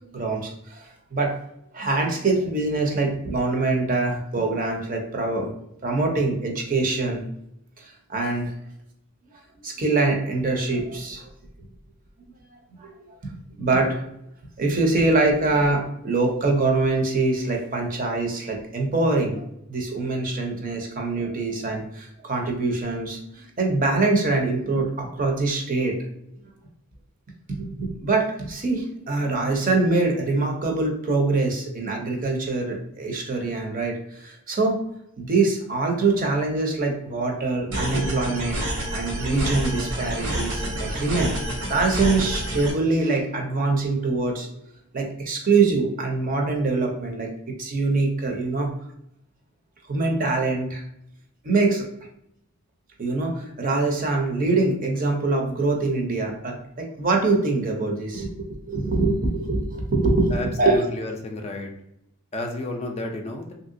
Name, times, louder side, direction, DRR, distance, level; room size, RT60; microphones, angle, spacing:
voice 1, 0.0-1.4 1.7-5.5 5.8-7.2 7.8-8.5 9.6-11.3 12.8-14.0 14.6-25.9 27.5-34.8 35.2-38.6 38.9-41.3 41.7-44.5 44.9-48.7 49.9-50.8 51.4-51.8 53.0-60.8, right 3 dB, 40° right, 2 dB, 0.6 m, -24 dB
sound 1, 37.7-42.7, right 1 dB, 85° right, 0.9 m, -28 dB
voice 2, 60.3-61.7 62.3-63.5, left 1 dB, 30° left, 2 dB, 0.4 m, -31 dB
3.1 x 2.7 x 2.5 m, 0.78 s
head